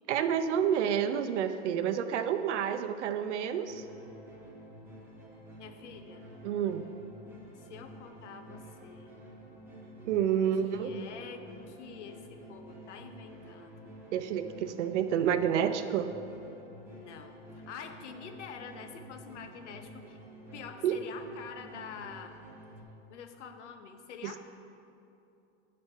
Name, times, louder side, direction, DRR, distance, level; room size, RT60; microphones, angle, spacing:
voice 1, 0.1-3.8 6.4-6.9 10.0-11.0 14.1-16.1 20.8-21.0 24.2-24.3, right 8 dB, 80° right, 9 dB, 0.6 m, -29 dB
sound 1, 3.6-22.8, right 1 dB, 5° right, 0.9 m, -50 dB
voice 2, 5.6-6.2 7.6-9.1 10.4-14.0 16.9-20.2 20.5-22.4 23.1-24.4, left 6 dB, 80° left, 7 dB, 0.8 m, -47 dB
8.8 x 4.2 x 5.5 m, 2.7 s
supercardioid pair, 155°, 35 cm